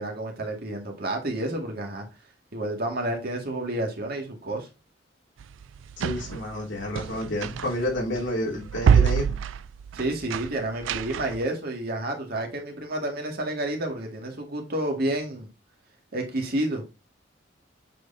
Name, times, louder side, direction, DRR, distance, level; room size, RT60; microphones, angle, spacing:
voice 1, 0.0-2.1 2.5-4.7 9.9-15.5 16.1-16.8, right 1 dB, 55° right, 1.9 m, -30 dB
sound 1, 5.4-11.5, right 7 dB, 90° right, 0.3 m, -26 dB
voice 2, 6.0-9.4, left 1 dB, 70° left, 2.7 m, -30 dB
7.7 x 4.8 x 2.6 m
head